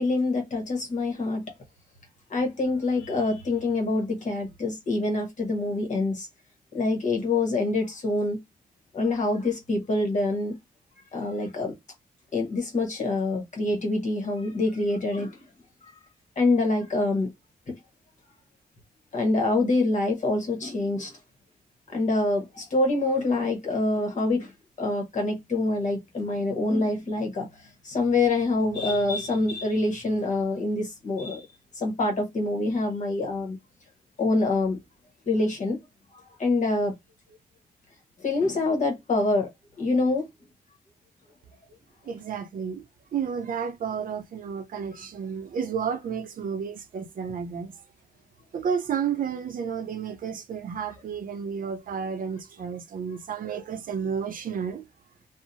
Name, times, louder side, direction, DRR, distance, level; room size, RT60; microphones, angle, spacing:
voice 1, 0.0-1.5 2.3-6.3 6.7-8.4 8.9-10.6 11.1-11.7 12.3-15.4 16.4-17.3 19.1-21.1 21.9-24.5 24.8-27.5 27.8-31.5 31.8-33.6 34.2-34.8 35.3-35.8 36.4-36.9 38.2-39.5 39.8-40.2, left 2 dB, 55° left, 1.0 m, -25 dB
voice 2, 42.1-42.8 43.1-47.7 48.5-54.9, right 7 dB, 65° right, 0.5 m, -31 dB
2.7 x 2.0 x 2.7 m
cardioid pair, 90°, 15 cm